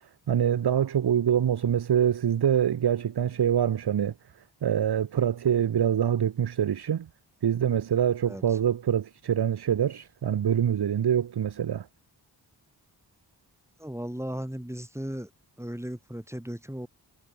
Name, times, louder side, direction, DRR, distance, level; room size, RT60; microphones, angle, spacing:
voice 1, 0.3-4.1 4.6-7.1 7.4-11.9, right 9 dB, 60° right, 0.9 m, -25 dB
voice 2, 8.3-8.6 13.8-15.3 15.6-16.9, equal, 5° right, 6.4 m, -36 dB
cardioid pair, 60°, 43 cm